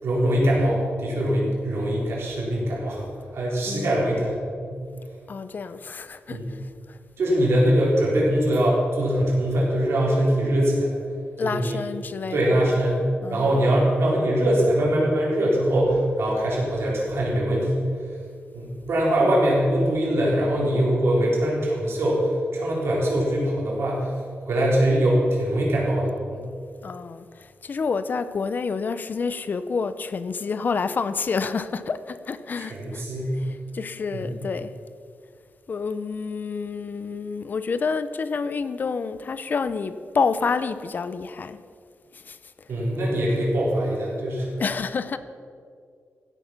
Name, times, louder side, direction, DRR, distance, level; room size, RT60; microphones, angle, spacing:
voice 1, 0.0-3.1 3.3-4.8 6.3-6.5 7.2-10.9 11.4-11.8 12.3-13.0 13.3-17.9 18.5-24.1 24.4-26.5 32.6-33.4 34.1-34.3 42.7-44.5, right 1 dB, 70° right, 4.2 m, -22 dB
voice 2, 3.7-4.3 5.3-7.0 11.4-12.7 13.2-13.6 26.8-33.0 33.3-34.7 35.7-41.6 42.1-42.7 44.6-45.2, left 5 dB, 45° left, 0.5 m, -29 dB
16.0 x 8.3 x 5.8 m
wide cardioid pair, 150°, 4 cm